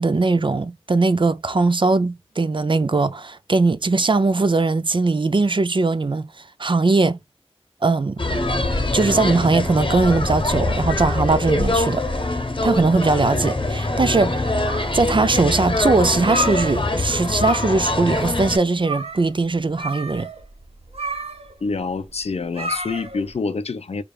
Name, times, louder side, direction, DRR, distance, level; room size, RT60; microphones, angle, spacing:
voice 1, 0.0-7.2 7.8-8.2 8.9-12.0 12.6-14.6 14.9-20.3, right 3 dB, 50° right, 0.4 m, -20 dB
sound 1, 8.2-18.6, left 2 dB, 55° left, 0.8 m, -23 dB
sound 2, 14.4-15.3 15.7-15.8 16.1-17.1 17.3-18.0 18.3-18.4 18.8-19.3 19.7-23.3, equal, 70° right, 0.9 m, -30 dB
voice 2, 21.6-24.0, left 4 dB, 90° left, 0.4 m, -27 dB
4.9 x 2.3 x 2.3 m
wide cardioid pair, 45°, 10 cm